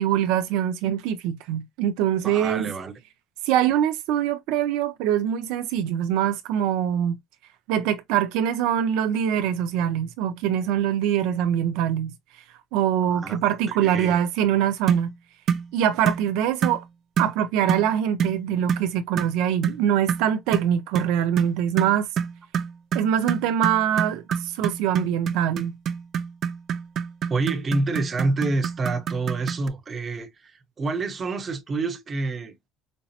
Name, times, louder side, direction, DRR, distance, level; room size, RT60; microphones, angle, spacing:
voice 1, 0.0-2.7 3.5-7.2 7.7-12.1 12.7-15.1 15.7-16.8 17.2-22.1 22.9-24.2 24.6-25.7, right 10 dB, 85° right, 0.6 m, -23 dB
voice 2, 2.2-3.0 13.1-14.2 24.3-24.4 27.3-32.6, right 3 dB, 25° right, 0.8 m, -28 dB
sound 1, 14.9-15.1 15.5-15.7 16.1-16.3 16.6-16.8 17.2-17.4 17.7-17.9 18.2-18.4 18.7-18.9 19.2-19.4 19.6-19.8 20.1-29.7, right 7 dB, 40° right, 0.3 m, -27 dB
5.3 x 2.0 x 2.8 m
cardioid pair, 165°, 0 cm